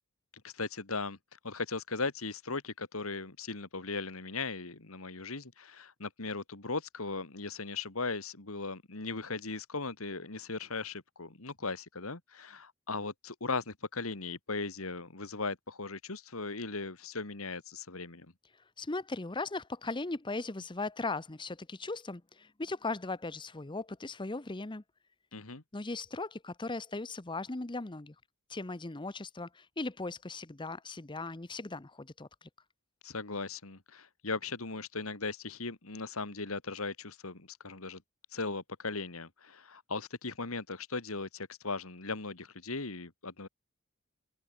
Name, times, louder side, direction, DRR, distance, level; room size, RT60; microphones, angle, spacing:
voice 1, 0.4-1.2 1.4-18.3 25.3-25.6 33.0-38.0 38.3-43.5, left 3 dB, 75° left, 2.2 m, -38 dB
voice 2, 18.8-24.8 25.7-28.1 28.5-32.5, left 3 dB, 20° left, 0.8 m, -38 dB
head